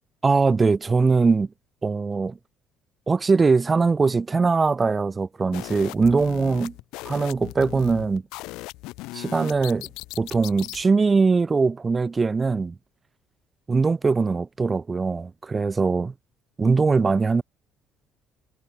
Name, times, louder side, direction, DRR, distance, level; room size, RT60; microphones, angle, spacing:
voice 1, 0.2-1.5 1.8-2.4 3.1-6.7 7.0-8.2 9.1-9.9 10.2-12.7 13.7-16.1 16.6-17.4, right 4 dB, 30° right, 1.4 m, -21 dB
sound 1, 5.5-10.8, left 21 dB, 80° left, 2.3 m, -38 dB
supercardioid pair, 65°, 0 cm